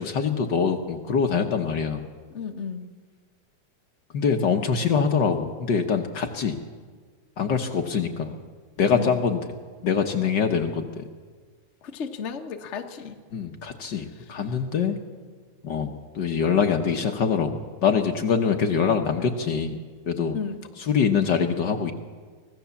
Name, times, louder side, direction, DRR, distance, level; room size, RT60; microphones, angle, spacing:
voice 1, 0.0-2.1 4.1-6.6 7.4-8.4 8.8-9.4 9.8-11.1 13.3-15.0 15.6-20.4 20.8-21.9, left 6 dB, 65° left, 5 dB, 1.1 m, -24 dB
voice 2, 2.3-2.9 8.9-9.2 11.8-13.1 20.3-20.6, left 6 dB, 85° left, 5 dB, 0.6 m, -33 dB
24.5 x 17.5 x 7.1 m, 1.5 s
omnidirectional pair, 3.5 m